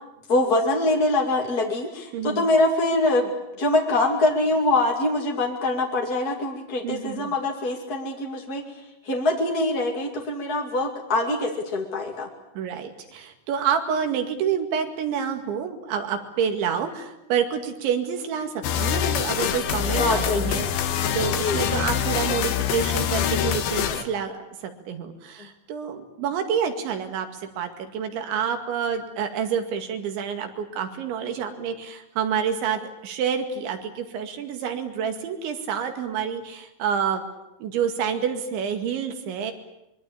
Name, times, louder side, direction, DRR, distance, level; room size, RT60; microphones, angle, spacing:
voice 1, 0.3-3.3 3.6-8.6 9.0-12.3 20.0-20.5 21.4-21.6, left 2 dB, 35° left, 0 dB, 1.6 m, -24 dB
voice 2, 2.1-2.4 6.8-7.3 12.6-37.2 37.6-39.5, right 7 dB, 70° right, 6 dB, 4.4 m, -28 dB
sound 1, 18.6-24.0, left 9 dB, 65° left, 2.7 m, -25 dB
25.0 x 23.0 x 8.7 m, 0.87 s
omnidirectional pair, 5.6 m